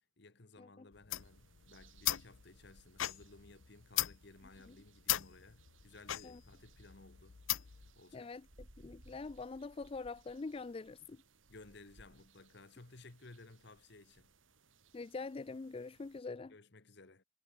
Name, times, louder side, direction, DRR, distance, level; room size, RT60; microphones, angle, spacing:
voice 1, 0.2-7.4 7.9-8.3 11.5-14.3 16.5-17.2, left 2 dB, 60° left, 1.4 m, -58 dB
sound 1, 0.9-7.9, left 14 dB, 80° left, 0.7 m, -39 dB
sound 2, 1.1-16.2, right 2 dB, 80° right, 7.1 m, -65 dB
voice 2, 8.1-8.4 8.8-11.2 14.9-16.5, left 3 dB, 30° left, 0.4 m, -44 dB
head